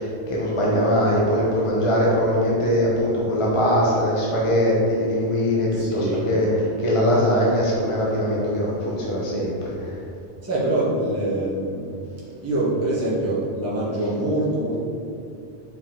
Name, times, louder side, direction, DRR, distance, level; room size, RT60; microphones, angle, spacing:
voice 1, 0.0-6.5 6.8-9.9, equal, 30° left, -5 dB, 0.9 m, -21 dB
voice 2, 5.7-6.3 10.4-12.0 12.4-14.8, right 1 dB, 15° right, -8 dB, 1.2 m, -24 dB
5.4 x 4.8 x 3.7 m, 2.6 s
omnidirectional pair, 1.1 m